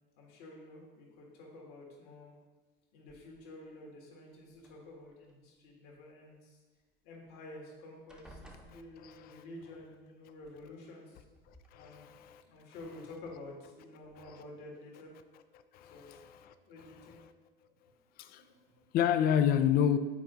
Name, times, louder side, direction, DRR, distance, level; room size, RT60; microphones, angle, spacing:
voice 1, 0.2-2.3 2.9-6.6 7.0-11.2 11.8-12.1 12.5-15.1 15.8-16.2 16.6-17.2 17.7-17.8 18.4-18.9, left 2 dB, 60° left, 1.9 m, -50 dB
sound 1, 3.1-3.7 4.5-5.3 7.1-7.2 7.5-7.8 8.1-9.5 10.7-10.8 11.3-11.7, right 1 dB, ahead, 0.7 m, -56 dB
voice 2, 8.7-9.4 11.7-12.4 15.7-16.5 18.2-18.4 18.9-20.0, left 9 dB, 35° left, 0.4 m, -29 dB
8.3 x 4.4 x 2.6 m
hypercardioid pair, 85°, 30 cm